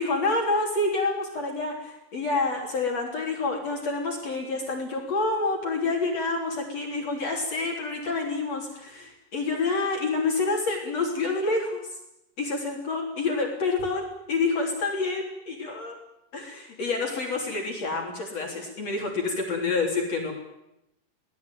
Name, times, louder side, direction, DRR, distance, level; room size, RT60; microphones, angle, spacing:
voice 1, 0.0-12.0 12.4-15.9 16.3-20.3, left 3 dB, 50° left, 1 dB, 4.5 m, -28 dB
24.5 x 18.5 x 9.3 m, 0.85 s
omnidirectional pair, 3.9 m